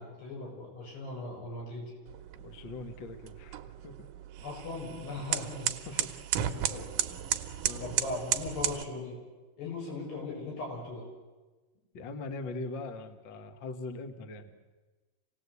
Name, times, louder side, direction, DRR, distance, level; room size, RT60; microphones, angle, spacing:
voice 1, 0.0-1.9 4.4-6.0 6.5-6.9 7.8-9.2 9.6-11.1, left 2 dB, 85° left, -2 dB, 9.2 m, -39 dB
sound 1, 2.1-8.8, right 11 dB, 70° right, 2.1 m, -34 dB
voice 2, 2.3-4.1 5.0-5.5 5.9-6.1 7.6-7.9 11.9-14.5, left 3 dB, 60° left, 8 dB, 1.2 m, -41 dB
27.0 x 18.5 x 8.4 m, 1.3 s
omnidirectional pair, 4.6 m